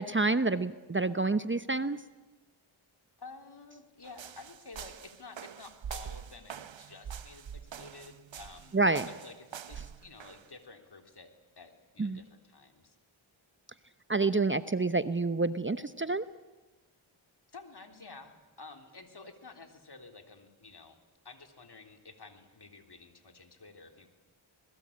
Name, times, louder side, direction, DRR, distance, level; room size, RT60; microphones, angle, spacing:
voice 1, 0.0-2.0 8.7-9.1 12.0-12.2 14.1-16.3, right 3 dB, 25° right, 13 dB, 0.9 m, -28 dB
voice 2, 3.2-8.8 9.1-11.3 11.6-13.0 17.5-21.0 21.2-24.1, left 3 dB, 50° left, 6 dB, 3.6 m, -51 dB
sound 1, 4.0-10.5, right 8 dB, 65° right, 1.0 m, -44 dB
26.5 x 20.5 x 8.6 m, 1.2 s
cardioid pair, 55°, 49 cm